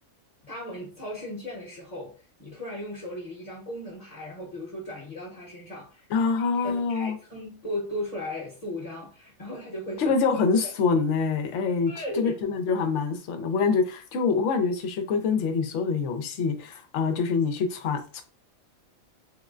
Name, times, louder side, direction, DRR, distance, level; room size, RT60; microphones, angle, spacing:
voice 1, 0.5-10.7 11.9-12.4, left 1 dB, 35° left, 0.9 m, -37 dB
voice 2, 6.1-7.2 10.0-18.2, left 5 dB, 70° left, 0.9 m, -25 dB
3.6 x 2.1 x 2.4 m
omnidirectional pair, 1.4 m